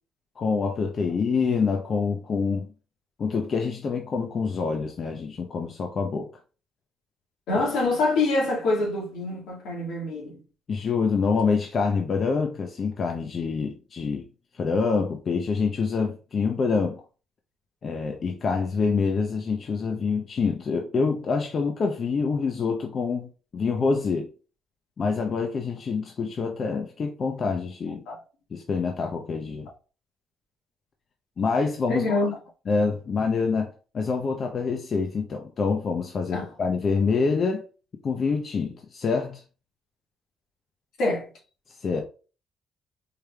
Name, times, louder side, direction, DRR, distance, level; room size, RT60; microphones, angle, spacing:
voice 1, 0.4-2.7 3.2-6.3 10.7-14.3 14.6-17.0 17.8-24.3 25.0-28.0 28.5-29.7 31.4-32.2 32.7-37.6 38.0-39.4 41.8-42.0, left 5 dB, 45° left, 0.6 m, -26 dB
voice 2, 7.5-10.4 28.1-28.2 31.9-32.3 36.3-36.5 41.0-41.3, left 2 dB, 80° left, 1.7 m, -25 dB
4.7 x 3.3 x 2.3 m
cardioid pair, 100°, 0 cm